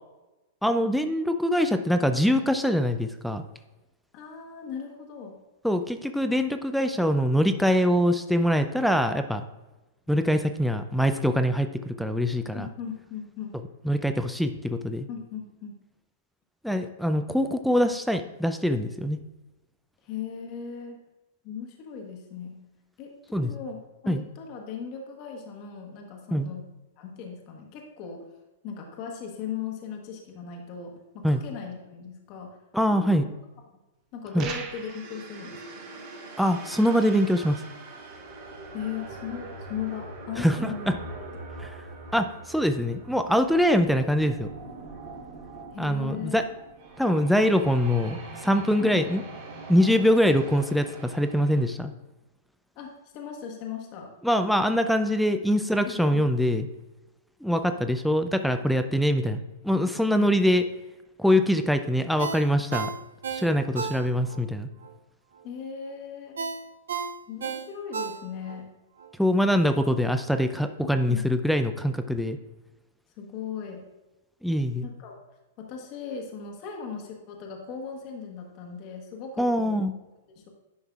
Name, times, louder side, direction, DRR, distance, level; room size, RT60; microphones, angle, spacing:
voice 1, 0.6-3.4 5.6-9.4 10.1-12.7 13.8-15.1 16.6-19.2 23.3-23.5 24.1-24.2 26.3-26.5 31.2-31.4 32.7-33.3 34.3-34.5 36.4-37.6 40.4-41.0 42.1-44.5 45.8-46.4 47.0-49.2 49.7-51.9 54.2-56.7 57.4-60.7 61.2-62.9 63.3-64.7 69.2-72.4 74.4-74.9 79.4-79.9, equal, ahead, 8 dB, 0.4 m, -23 dB
voice 2, 4.1-5.4 12.5-13.6 15.1-15.8 20.0-21.0 21.4-22.6 23.0-26.6 27.0-28.3 28.6-32.6 32.9-33.3 34.1-35.6 38.7-41.0 45.7-46.5 48.8-49.0 52.8-54.1 55.8-56.2 65.4-66.4 67.3-68.7 71.1-71.3 73.2-73.9 74.8-75.2 75.6-79.8 80.4-80.5, left 7 dB, 45° left, 2 dB, 1.2 m, -38 dB
sound 1, 34.4-35.1, right 5 dB, 35° right, 0.9 m, -37 dB
sound 2, 34.7-51.6, right 2 dB, 55° right, 2.0 m, -42 dB
Ringtone, 62.2-64.4 64.8-64.9 66.4-68.6 69.0-69.1, right 6 dB, 75° right, 0.5 m, -33 dB
10.5 x 5.4 x 2.4 m, 1.1 s
hypercardioid pair, 110°, 0 cm